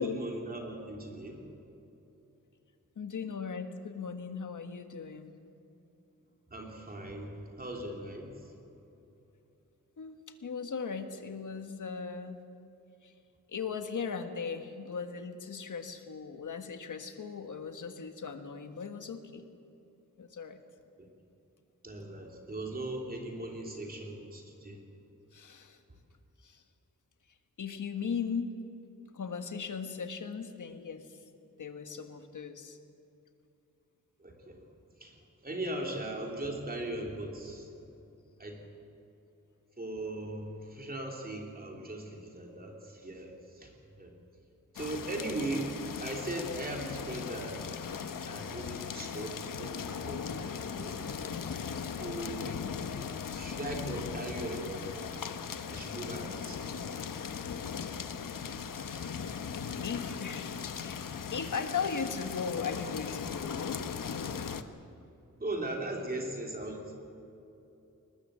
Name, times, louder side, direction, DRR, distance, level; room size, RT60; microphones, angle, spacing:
voice 1, 0.0-1.4 6.5-8.5 21.0-21.1 21.8-24.8 34.2-34.6 35.0-35.2 35.4-37.7 38.4-38.6 39.8-43.7 44.0-44.1 44.7-45.7 46.0-47.6 48.3-51.0 52.0-52.6 53.4-55.0 55.7-56.7 65.4-66.9, right 1 dB, 30° right, 1 dB, 3.1 m, -39 dB
voice 2, 2.9-5.4 10.0-12.4 13.0-13.1 13.5-19.5 20.2-20.6 25.3-25.8 26.4-26.6 27.6-28.5 29.1-31.2 31.6-32.8 35.8-35.9 49.9-50.1 53.9-54.1 59.5-64.0 64.6-64.7 66.7-66.8, left 6 dB, 70° left, 7 dB, 1.6 m, -38 dB
sound 1, 44.8-64.6, left 6 dB, 85° left, 1.1 m, -38 dB
21.5 x 20.0 x 7.6 m, 2.9 s
wide cardioid pair, 155°, 32 cm